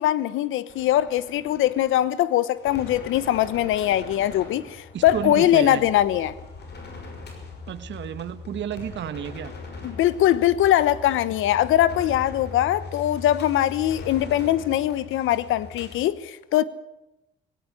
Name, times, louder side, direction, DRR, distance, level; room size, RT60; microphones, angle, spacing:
voice 1, 0.0-6.3 9.8-16.6, left 12 dB, 90° left, 1.1 m, -22 dB
sound 1, 0.7-16.0, left 4 dB, 55° left, 6.0 m, -41 dB
voice 2, 4.9-5.8 7.7-9.5, right 9 dB, 65° right, 1.5 m, -31 dB
18.0 x 17.5 x 9.8 m
cardioid pair, 90°, 20 cm